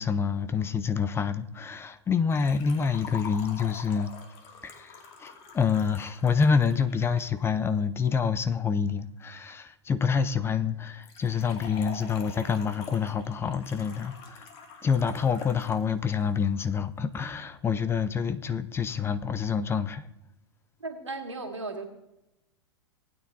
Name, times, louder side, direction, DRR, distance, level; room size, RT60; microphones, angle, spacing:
voice 1, 0.0-4.1 4.6-14.5 14.8-20.1, left 6 dB, 15° left, 0.6 m, -27 dB
Liquid, 2.3-7.3 11.0-15.8 16.1-16.2 17.1-17.2, left 5 dB, 40° left, 2.5 m, -46 dB
voice 2, 20.8-21.8, right 3 dB, 85° right, 2.2 m, -36 dB
19.5 x 9.5 x 2.8 m
figure-of-eight pair, 100°, 15 cm